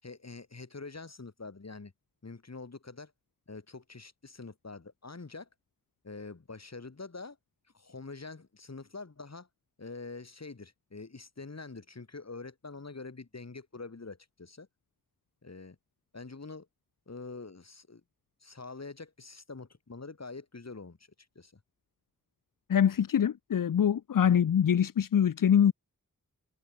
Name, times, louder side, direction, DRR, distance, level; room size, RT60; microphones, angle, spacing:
voice 1, 0.0-1.9 2.2-3.1 3.5-5.5 6.0-7.4 7.7-9.5 9.8-14.7 15.4-15.8 16.1-16.7 17.1-18.0 18.4-21.0 21.3-21.6 24.2-24.4, left 3 dB, 55° left, 8.0 m, -45 dB
voice 2, 22.7-25.7, left 8 dB, 80° left, 0.7 m, -24 dB
wide cardioid pair, 85°, 32 cm